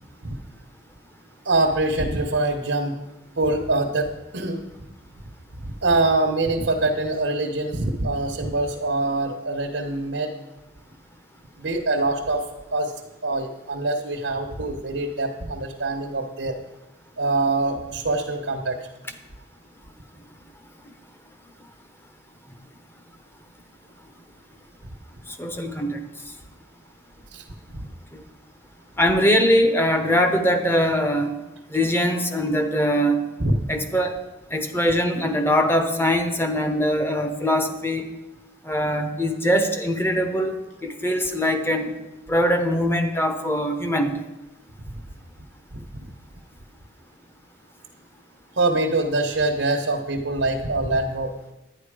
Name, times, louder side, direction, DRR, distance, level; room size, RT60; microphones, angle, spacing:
voice 1, 1.4-3.0 3.4-4.9 5.6-10.3 11.6-12.4 12.7-12.9 13.2-16.6 17.2-18.8 27.3-27.4 27.7-27.9 33.4-33.5 45.7-45.8 48.6-51.3, right 2 dB, 80° right, 1 dB, 1.1 m, -24 dB
voice 2, 25.4-26.0 29.0-31.3 31.7-33.2 33.7-34.1 34.5-38.1 38.7-40.5 40.8-41.9 42.3-44.2, equal, 10° left, 6 dB, 0.9 m, -22 dB
11.0 x 9.6 x 4.9 m, 1.0 s
head